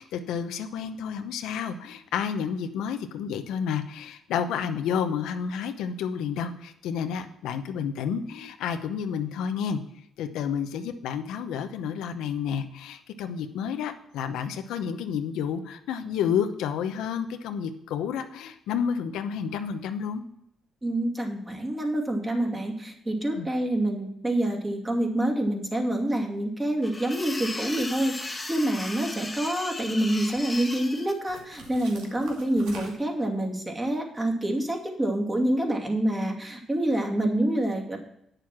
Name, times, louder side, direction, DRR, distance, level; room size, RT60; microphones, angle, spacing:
voice 1, 0.0-9.8 10.2-20.2 23.3-23.5, left 7 dB, 90° left, 7 dB, 0.8 m, -30 dB
voice 2, 20.8-38.0, right 1 dB, 20° right, 1 dB, 2.4 m, -27 dB
sound 1, 26.8-31.1, left 2 dB, 15° left, 1.4 m, -36 dB
sound 2, 27.4-27.7 28.2-29.7 30.0-30.6 31.3-33.2, right 4 dB, 90° right, 2.1 m, -47 dB
9.1 x 6.8 x 6.1 m, 0.74 s
cardioid pair, 90°, 0 cm